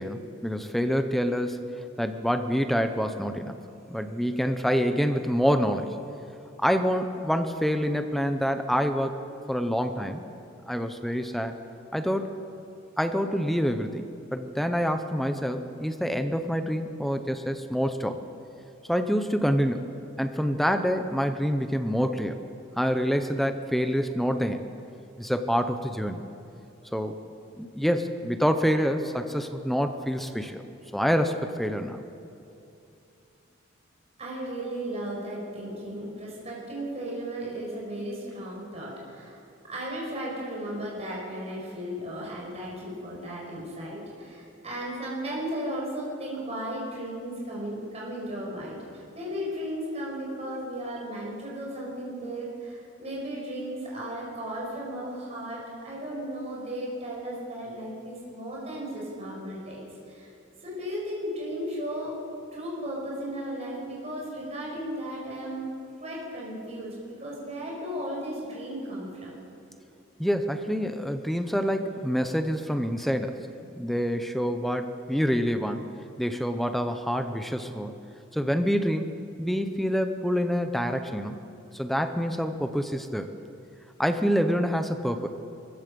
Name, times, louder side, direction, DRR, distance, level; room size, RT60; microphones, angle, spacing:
voice 1, 0.0-1.7 2.0-3.6 3.9-6.0 6.6-9.2 9.5-10.2 10.7-11.5 11.9-12.3 13.0-14.0 14.3-18.2 18.9-19.9 20.2-22.4 22.8-24.7 25.2-26.2 26.9-27.2 27.6-30.6 30.9-32.0 70.2-73.4 73.8-75.9 76.2-78.0 78.3-79.1 79.4-81.4 81.7-83.3 84.0-85.3, equal, ahead, 7 dB, 0.8 m, -27 dB
voice 2, 34.2-39.4 39.7-60.3 60.6-62.1 62.5-65.7 66.0-66.9 67.2-69.3, right 1 dB, 30° right, -4 dB, 5.7 m, -35 dB
24.0 x 15.5 x 7.0 m, 2.7 s
head